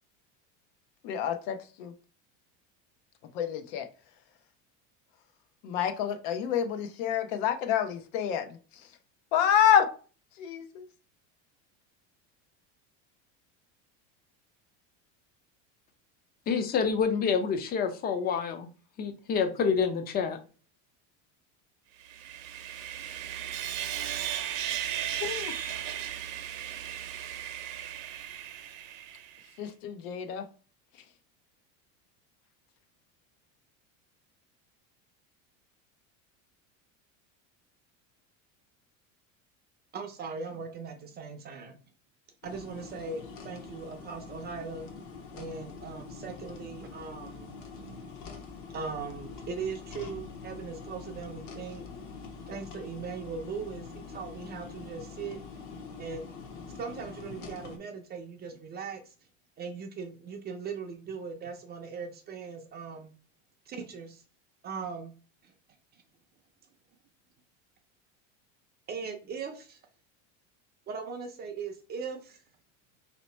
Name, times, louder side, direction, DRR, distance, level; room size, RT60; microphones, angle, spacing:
voice 1, 1.0-1.9 3.3-3.9 5.6-8.6 9.3-9.9 10.4-10.9 25.2-25.6 29.6-30.4, left 9 dB, 75° left, 0.8 m, -28 dB
voice 2, 16.5-18.7 19.0-20.4, left 6 dB, 25° left, 0.5 m, -27 dB
Sawing, 22.0-29.4, right 10 dB, 85° right, 0.7 m, -36 dB
voice 3, 39.9-41.8 42.4-44.9 45.3-47.5 48.7-51.8 52.5-55.4 56.0-56.2 56.8-59.1 59.6-63.1 63.7-64.2 64.6-65.1 65.4-65.5 68.9-69.8 70.9-72.4, right 5 dB, 25° right, 0.5 m, -39 dB
sound 1, 42.4-57.8, left 4 dB, 50° left, 0.9 m, -44 dB
3.1 x 2.9 x 4.3 m
supercardioid pair, 145°, 39 cm